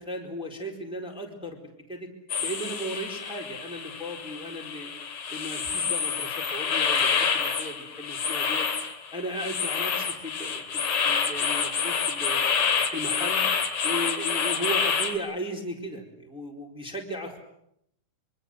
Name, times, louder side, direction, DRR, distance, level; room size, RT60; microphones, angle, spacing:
voice 1, 0.0-2.1 2.4-4.9 5.3-8.7 9.1-12.4 12.9-13.4 13.8-17.4, equal, ahead, 0 dB, 4.0 m, -36 dB
sound 1, 2.3-15.1, left 6 dB, 55° left, 3.5 m, -28 dB
26.0 x 24.5 x 8.0 m, 0.72 s
omnidirectional pair, 3.8 m